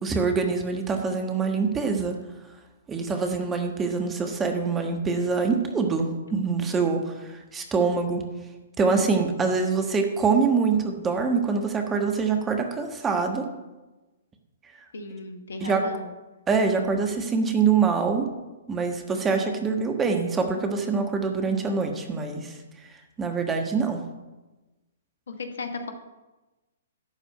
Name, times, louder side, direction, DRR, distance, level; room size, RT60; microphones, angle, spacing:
voice 1, 0.0-2.1 2.9-8.2 8.8-13.5 15.6-16.0 16.5-18.3 18.7-22.6 23.2-24.0, right 5 dB, 15° right, 4 dB, 1.3 m, -25 dB
voice 2, 14.9-16.1 25.3-25.9, left 3 dB, 65° left, 7 dB, 1.2 m, -35 dB
12.0 x 4.9 x 7.6 m, 1.1 s
figure-of-eight pair, 120°, 0 cm